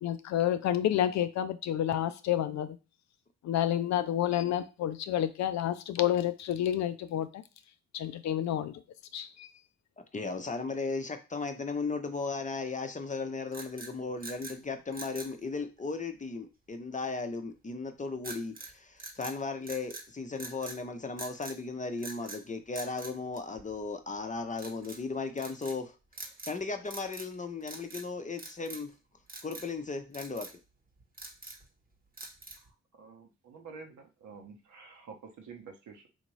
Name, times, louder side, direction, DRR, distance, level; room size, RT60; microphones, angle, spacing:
voice 1, 0.0-2.8 3.4-7.4 7.9-8.7 9.1-9.3, left 11 dB, 55° left, 0.4 m, -29 dB
voice 2, 10.1-25.9 26.5-28.9 29.4-30.5, left 4 dB, 25° left, 0.7 m, -36 dB
sound 1, 13.5-14.6 14.9-15.4 18.2-18.7 19.0-20.1 20.4-20.8 21.2-21.6 22.0-22.4 22.7-23.9 24.6-25.0 25.4-25.8 26.1-26.6 26.8-27.3 27.6-28.1 28.4-28.9 29.3-29.7 30.1-30.6 31.0-31.7 32.2-32.7, right 2 dB, 25° right, 1.0 m, -45 dB
voice 3, 33.0-36.1, right 5 dB, 65° right, 1.0 m, -49 dB
3.6 x 2.6 x 3.1 m
hypercardioid pair, 45°, 32 cm